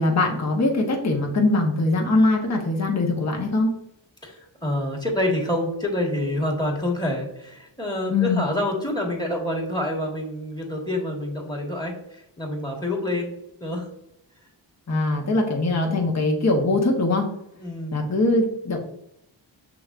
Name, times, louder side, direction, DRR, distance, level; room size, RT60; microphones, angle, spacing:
voice 1, 0.0-3.7 8.1-8.5 14.9-17.3 17.9-18.8, left 2 dB, 35° left, 1 dB, 1.0 m, -22 dB
voice 2, 4.2-13.9 17.6-18.0, left 1 dB, 10° left, 0 dB, 1.5 m, -27 dB
6.0 x 3.3 x 2.5 m, 0.80 s
cardioid pair, 50°, 48 cm